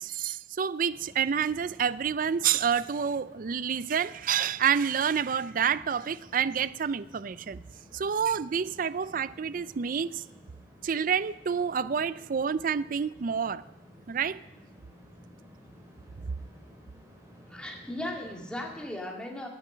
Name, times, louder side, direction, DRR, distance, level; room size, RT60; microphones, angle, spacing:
voice 1, 0.0-7.6 7.9-10.2 10.8-13.6 14.1-14.4, right 7 dB, 50° right, 0.4 m, -28 dB
sound 1, 0.9-18.9, equal, 20° right, 3.7 m, -54 dB
voice 2, 17.5-19.5, left 1 dB, 5° left, 2.3 m, -37 dB
17.0 x 10.0 x 5.6 m
head